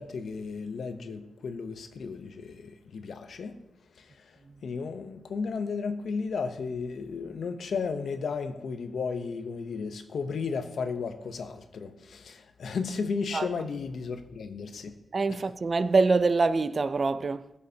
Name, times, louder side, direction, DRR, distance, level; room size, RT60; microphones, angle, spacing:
voice 1, 0.0-3.6 3.9-15.0 15.3-15.4, left 5 dB, 75° left, 0.7 m, -34 dB
voice 2, 15.1-17.5, right 3 dB, 45° right, 0.3 m, -25 dB
14.5 x 6.5 x 2.8 m
cardioid pair, 90°, 0 cm